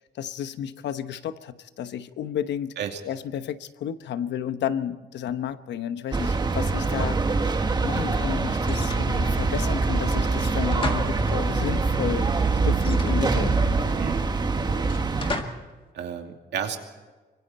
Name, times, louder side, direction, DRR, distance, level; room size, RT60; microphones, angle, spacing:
voice 1, 0.1-2.7 3.0-7.5 7.8-12.3 12.6-13.6, left 9 dB, 85° left, 11 dB, 1.1 m, -32 dB
sound 1, 6.1-15.4, right 3 dB, 25° right, 1.5 m, -24 dB
sound 2, 8.6-9.5 10.4-11.7 12.7-13.8 14.8-15.7, left 3 dB, 30° left, 2.0 m, -36 dB
voice 2, 13.9-14.2 15.9-16.8, right 8 dB, 80° right, 3 dB, 2.6 m, -32 dB
24.5 x 24.5 x 4.3 m, 1.3 s
cardioid pair, 155°, 18 cm